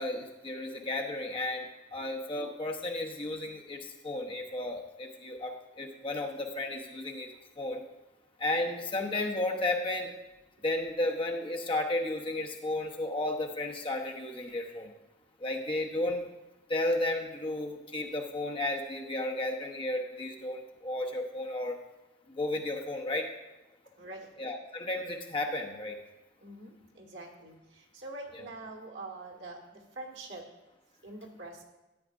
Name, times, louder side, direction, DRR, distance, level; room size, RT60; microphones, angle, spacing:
voice 1, 0.0-7.3 7.6-7.8 8.4-10.1 10.6-14.9 15.4-16.2 16.7-21.7 22.4-23.3 24.4-26.0 28.3-28.4, left 2 dB, 30° left, 1 dB, 0.8 m, -33 dB
voice 2, 24.0-24.3 26.4-30.5 31.0-31.6, right 2 dB, 75° right, 1 dB, 1.5 m, -45 dB
13.5 x 8.5 x 2.5 m, 1.0 s
head